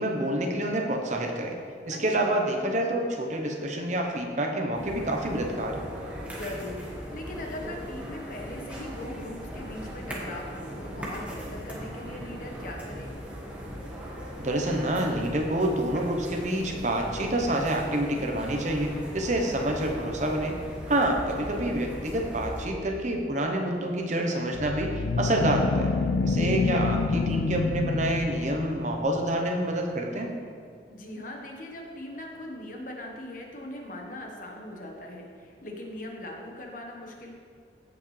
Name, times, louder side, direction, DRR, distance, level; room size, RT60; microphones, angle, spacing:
voice 1, 0.0-1.6 1.9-5.8 14.4-20.6 20.9-25.9 26.2-30.3, right 1 dB, 40° right, 2 dB, 1.0 m, -27 dB
voice 2, 1.9-2.3 6.3-13.2 21.3-21.7 26.4-27.2 30.9-37.3, left 1 dB, 50° left, 0 dB, 1.3 m, -40 dB
sound 1, 4.7-22.7, equal, 10° right, 1.5 m, -39 dB
sound 2, 24.5-28.9, left 4 dB, 80° left, 0.4 m, -27 dB
16.0 x 5.8 x 3.3 m, 2.3 s
head